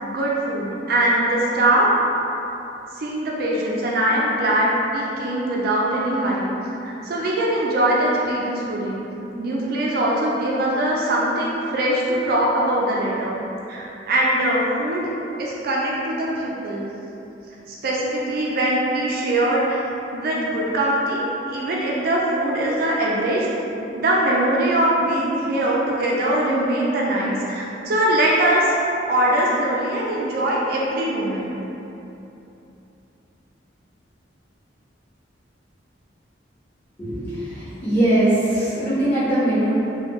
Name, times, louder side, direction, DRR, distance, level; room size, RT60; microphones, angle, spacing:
voice 1, 0.0-1.9 3.0-6.5 6.8-9.0 9.4-13.4 13.7-15.1 15.4-16.9 17.8-19.8 20.1-23.5 23.9-28.7 29.0-31.6, right 1 dB, 55° right, -4 dB, 0.4 m, -22 dB
voice 2, 37.0-39.8, right 1 dB, 10° left, -14 dB, 1.2 m, -21 dB
3.2 x 2.3 x 3.0 m, 3.0 s
head